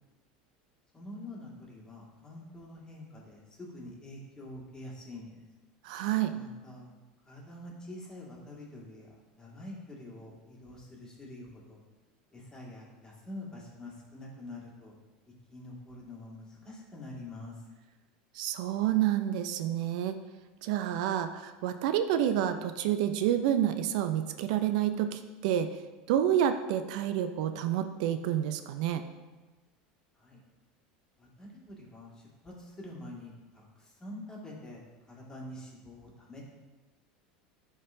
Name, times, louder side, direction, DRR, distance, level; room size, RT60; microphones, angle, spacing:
voice 1, 0.9-5.4 6.3-6.9 7.3-11.8 12.3-14.9 15.3-17.6 30.2-30.4 31.2-36.4, left 1 dB, 15° left, -3 dB, 1.8 m, -46 dB
voice 2, 5.8-6.3 18.3-20.2 20.6-25.7 26.1-29.0, right 10 dB, 70° right, 9 dB, 0.4 m, -29 dB
10.5 x 3.7 x 2.6 m, 1.2 s
supercardioid pair, 105°, 4 cm